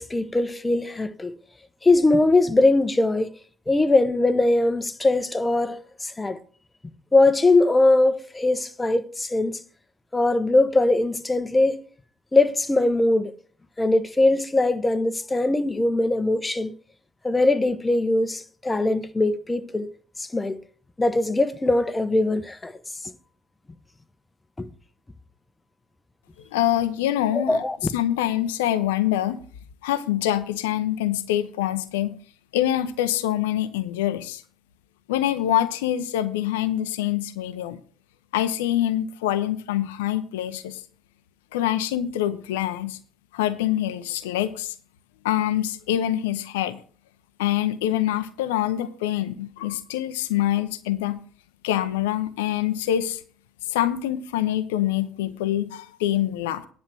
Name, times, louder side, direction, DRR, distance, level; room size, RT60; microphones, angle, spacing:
voice 1, 0.0-1.4 1.8-3.3 3.7-6.4 7.1-9.6 10.1-11.8 12.3-13.3 13.8-16.7 17.2-19.9 20.2-20.6 21.0-22.7 24.6-24.7 27.3-27.8, left 2 dB, 15° left, 0.9 m, -21 dB
voice 2, 26.5-27.6 27.9-29.4 29.8-32.2 32.5-34.4 35.1-37.8 38.3-40.8 41.5-43.0 43.3-44.7 45.2-46.8 47.4-51.2 51.6-53.2 53.6-56.7, left 12 dB, 75° left, 0.7 m, -25 dB
10.5 x 6.5 x 6.0 m
figure-of-eight pair, 50°, 0 cm